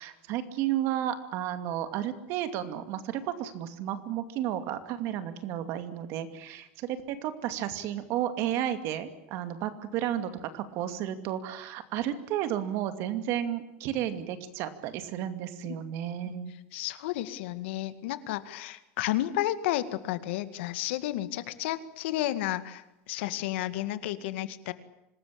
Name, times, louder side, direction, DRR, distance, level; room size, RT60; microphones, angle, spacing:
voice 1, 0.0-16.5, right 11 dB, 40° right, 10 dB, 2.5 m, -32 dB
voice 2, 16.7-24.7, left 14 dB, 65° left, 12 dB, 2.1 m, -32 dB
26.0 x 20.5 x 8.8 m, 0.89 s
supercardioid pair, 175°, 7 cm